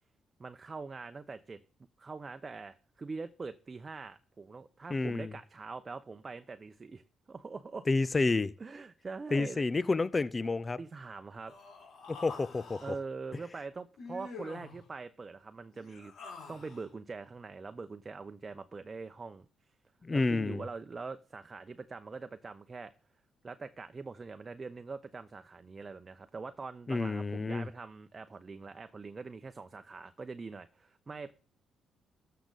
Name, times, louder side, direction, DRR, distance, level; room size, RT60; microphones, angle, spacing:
voice 1, 0.4-1.6 2.0-7.0 7.3-7.8 8.6-9.6 10.8-11.5 12.8-16.1 16.5-19.5 20.1-22.9 23.4-31.3, right 4 dB, 35° right, 0.8 m, -43 dB
voice 2, 4.9-5.3 7.9-8.5 9.3-10.8 12.1-12.8 20.0-20.6 26.9-27.7, left 3 dB, 30° left, 0.6 m, -29 dB
Human voice, 11.5-13.0 14.0-14.8 15.7-16.9, left 4 dB, 70° left, 5.2 m, -47 dB
13.0 x 6.8 x 4.0 m
supercardioid pair, 65°, 0 cm